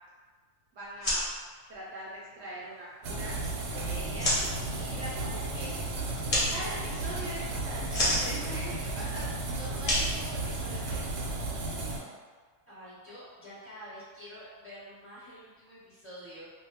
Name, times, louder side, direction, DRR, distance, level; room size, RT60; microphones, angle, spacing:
voice 1, 0.7-1.3 1.7-5.7 6.5-11.1, right 1 dB, 65° right, -7 dB, 0.8 m, -42 dB
sound 1, 0.8-11.1, left 1 dB, 40° left, 0.7 m, -34 dB
sound 2, 3.0-12.0, right 2 dB, 85° right, 1.2 m, -34 dB
voice 2, 12.7-16.4, equal, 10° right, -13 dB, 1.0 m, -47 dB
2.7 x 2.3 x 2.7 m, 1.5 s
omnidirectional pair, 1.7 m